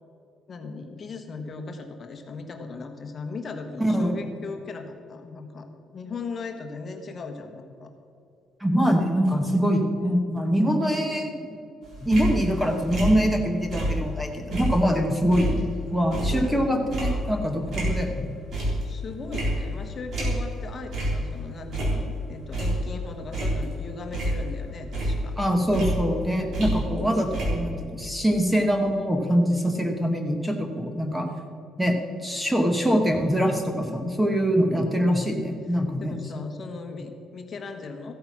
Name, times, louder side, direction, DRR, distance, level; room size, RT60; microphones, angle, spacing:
voice 1, 0.5-5.7 5.9-7.9 10.6-10.8 16.3-16.7 18.8-25.4 26.9-27.1 34.7-34.9 36.0-38.1, left 4 dB, 35° left, 5 dB, 1.3 m, -38 dB
voice 2, 3.8-4.2 8.6-11.6 12.0-18.3 25.4-31.3 31.8-36.1, equal, 5° right, 3 dB, 1.0 m, -24 dB
sound 1, 11.8-14.2 14.5-18.2 18.5-19.0 19.3-20.6 20.9-21.2 21.6-22.9 23.3-24.6 24.9-27.1 27.3-27.5, right 1 dB, 50° right, 3.9 m, -28 dB
14.5 x 8.7 x 6.1 m, 2.6 s
cardioid pair, 150°, 0 cm